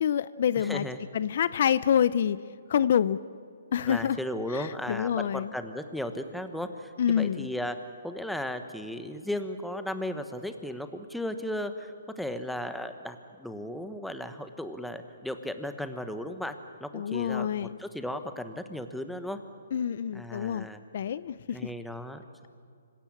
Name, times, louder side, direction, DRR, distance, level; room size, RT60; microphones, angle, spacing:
voice 1, 0.0-0.9 1.1-2.4 2.7-3.2 3.7-4.2 4.5-5.5 7.0-7.5 16.9-17.8 19.7-20.7 20.9-21.7, left 8 dB, 55° left, 17 dB, 0.5 m, -27 dB
voice 2, 0.6-1.0 3.8-7.8 8.0-16.5 16.8-19.4 20.1-20.8 21.5-22.2, left 1 dB, ahead, 8 dB, 1.1 m, -35 dB
26.0 x 16.5 x 8.7 m, 2.3 s
hypercardioid pair, 155°, 0 cm